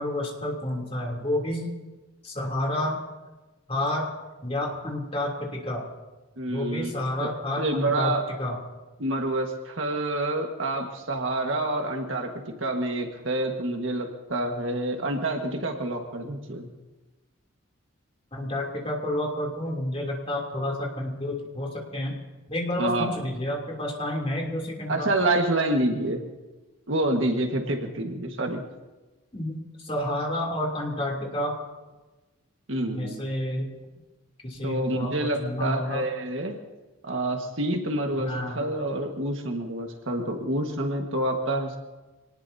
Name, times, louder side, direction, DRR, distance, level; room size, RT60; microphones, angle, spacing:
voice 1, 0.0-1.7 2.2-3.0 3.7-4.1 4.4-5.8 6.5-8.6 18.3-22.2 22.5-25.1 29.3-31.5 32.9-33.7 34.4-36.0 38.2-38.6, left 1 dB, 30° left, -1 dB, 3.0 m, -30 dB
voice 2, 6.4-6.9 7.2-7.3 7.6-8.2 9.0-16.7 22.8-23.1 24.9-26.2 26.9-28.6 32.7-33.2 34.6-36.6 37.0-41.8, right 1 dB, 70° right, 3 dB, 1.6 m, -27 dB
25.5 x 19.0 x 2.8 m, 1.2 s
head